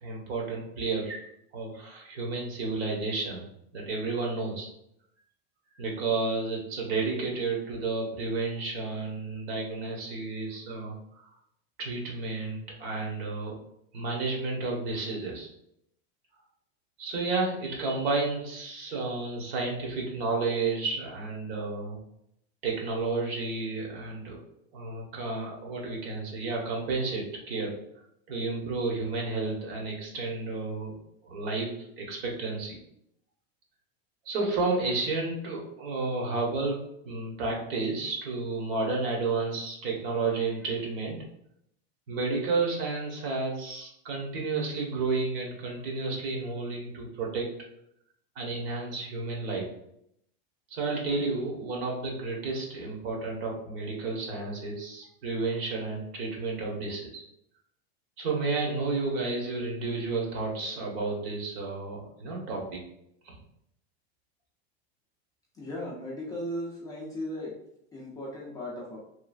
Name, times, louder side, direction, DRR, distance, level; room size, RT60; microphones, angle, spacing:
voice 1, 0.0-1.2 1.5-3.5 3.7-4.7 5.7-11.3 11.8-13.6 13.9-15.5 17.0-22.0 22.6-24.4 24.7-27.7 28.3-31.0 31.2-31.7 32.0-32.7 34.2-41.2 42.1-47.5 48.4-49.7 50.7-57.2 58.2-62.8 63.3-63.4, right 3 dB, 70° right, -1 dB, 1.1 m, -31 dB
voice 2, 65.5-67.5 67.9-69.0, left 1 dB, 10° left, -6 dB, 0.4 m, -36 dB
3.1 x 2.4 x 2.3 m, 0.75 s
supercardioid pair, 155°, 32 cm